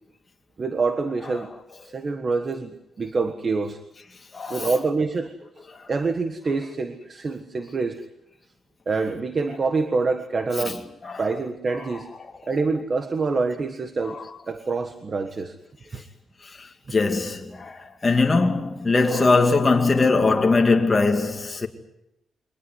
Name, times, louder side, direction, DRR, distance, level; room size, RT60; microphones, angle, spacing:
voice 1, 0.6-1.5 1.8-3.8 4.5-8.0 8.9-10.8 11.2-12.1 12.4-15.6 15.9-16.1 19.1-19.2, right 4 dB, 35° right, 1.5 m, -26 dB
voice 2, 4.3-4.7 10.6-10.7 11.0-11.2 16.9-21.7, left 3 dB, 25° left, 2.4 m, -21 dB
23.5 x 19.5 x 9.6 m
cardioid pair, 130°, 0 cm